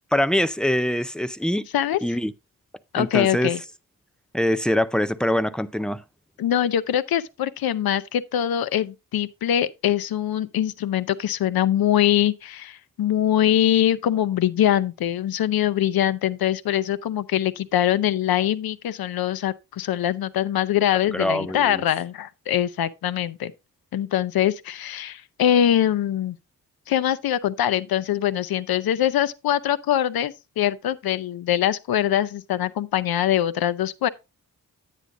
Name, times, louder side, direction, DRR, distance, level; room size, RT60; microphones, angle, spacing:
voice 1, 0.1-1.7 2.0-2.3 3.0-3.5 4.3-6.0 21.1-21.8, left 1 dB, ahead, 0.4 m, -23 dB
voice 2, 2.9-3.6 6.4-23.5 23.9-26.4 26.9-34.1, left 11 dB, 90° left, 0.6 m, -23 dB
9.9 x 9.3 x 2.5 m
wide cardioid pair, 105°, 35 cm